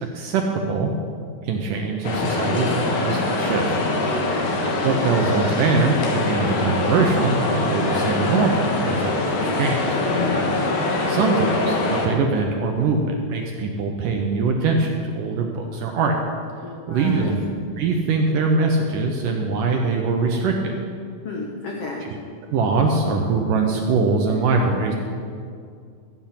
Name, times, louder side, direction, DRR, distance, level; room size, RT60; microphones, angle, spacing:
voice 1, 0.1-0.9 1.4-3.6 4.8-10.0 11.1-16.1 16.9-17.4 17.8-20.7 22.1-22.2 22.5-24.9, right 4 dB, 75° right, 2 dB, 2.1 m, -22 dB
sound 1, 2.0-12.1, left 2 dB, 60° left, 2.4 m, -23 dB
voice 2, 2.5-2.9 4.1-4.4 10.0-10.6 16.6-17.4 21.2-22.0, left 3 dB, 90° left, -1 dB, 1.3 m, -33 dB
14.0 x 9.2 x 5.7 m, 2.2 s
omnidirectional pair, 4.5 m